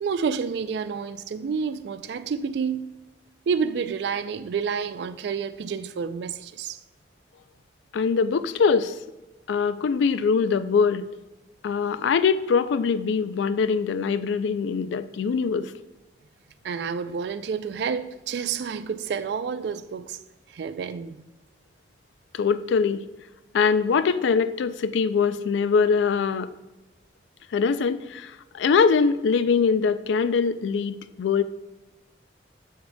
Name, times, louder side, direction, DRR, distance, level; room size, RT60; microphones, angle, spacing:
voice 1, 0.0-2.9 3.5-6.8 16.6-20.2 20.5-21.1, right 6 dB, 70° right, 0.3 m, -29 dB
voice 2, 7.9-9.0 9.5-11.1 11.6-15.7 22.3-23.0 23.5-26.5 27.5-31.4, left 5 dB, 85° left, 0.3 m, -23 dB
6.9 x 6.5 x 2.2 m
head